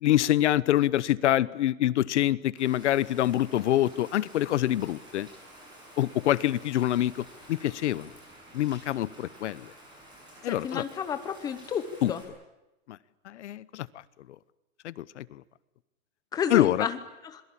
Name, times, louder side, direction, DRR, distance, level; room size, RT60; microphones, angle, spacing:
voice 1, 0.0-5.3 6.0-8.1 8.5-9.7 10.4-10.8 12.0-12.1 12.9-13.0 13.2-13.9 14.8-15.4 16.5-16.9, left 13 dB, 55° left, 19 dB, 0.9 m, -26 dB
Rain, 2.6-12.2, right 1 dB, 10° right, 7.3 m, -51 dB
voice 2, 10.5-12.2 16.3-17.0 17.3-17.4, left 7 dB, 10° left, 10 dB, 0.9 m, -31 dB
26.5 x 22.5 x 8.7 m, 1.0 s
supercardioid pair, 175°, 41 cm